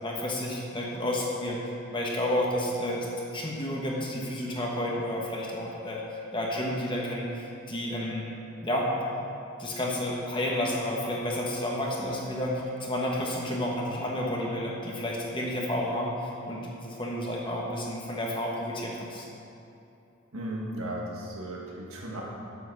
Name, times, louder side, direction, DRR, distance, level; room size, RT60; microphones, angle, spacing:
voice 1, 0.0-1.6 1.9-3.1 3.3-6.0 6.3-8.3 8.6-8.9 9.6-19.2, left 1 dB, 25° left, -3 dB, 1.2 m, -31 dB
voice 2, 20.3-22.2, right 1 dB, 85° right, -3 dB, 1.8 m, -36 dB
8.2 x 7.9 x 6.3 m, 2.7 s
head